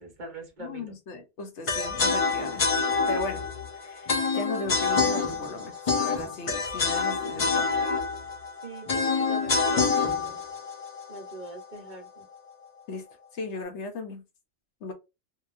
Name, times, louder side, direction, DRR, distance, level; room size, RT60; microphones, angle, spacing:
voice 1, 0.0-0.9 8.6-10.4 11.1-12.3, right 3 dB, 45° right, 1.0 m, -42 dB
voice 2, 0.6-2.6 3.1-3.4 3.8-7.7 12.9-13.0 13.3-14.2 14.8-14.9, left 3 dB, 85° left, 1.1 m, -37 dB
sound 1, 1.7-11.7, left 4 dB, 40° left, 0.5 m, -27 dB
2.8 x 2.4 x 2.4 m
omnidirectional pair, 1.1 m